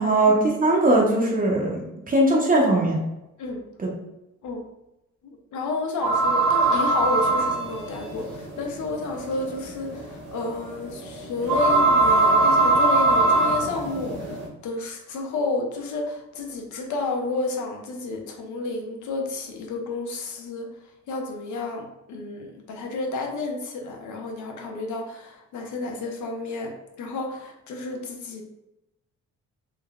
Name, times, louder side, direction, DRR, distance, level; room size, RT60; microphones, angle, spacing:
voice 1, 0.0-3.0 3.8-3.9, right 1 dB, 30° right, -2 dB, 0.5 m, -20 dB
voice 2, 5.5-20.7 21.1-28.4, left 3 dB, 75° left, 2 dB, 0.6 m, -31 dB
sound 1, 6.0-14.4, right 2 dB, 70° right, 1.1 m, -22 dB
3.5 x 2.0 x 2.3 m, 0.92 s
cardioid pair, 90°, 30 cm